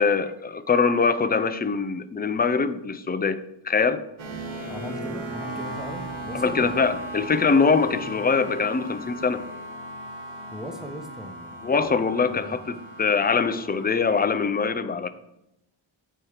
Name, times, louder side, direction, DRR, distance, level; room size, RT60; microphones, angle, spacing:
voice 1, 0.0-4.0 6.3-9.4 11.6-15.1, left 5 dB, 20° left, 11 dB, 0.4 m, -23 dB
sound 1, 4.2-14.3, right 1 dB, 75° right, 1.2 m, -37 dB
voice 2, 4.7-6.9 10.5-11.8 12.2-12.6, equal, ahead, 3 dB, 1.0 m, -39 dB
8.8 x 4.5 x 4.9 m, 0.85 s
wide cardioid pair, 90°, 48 cm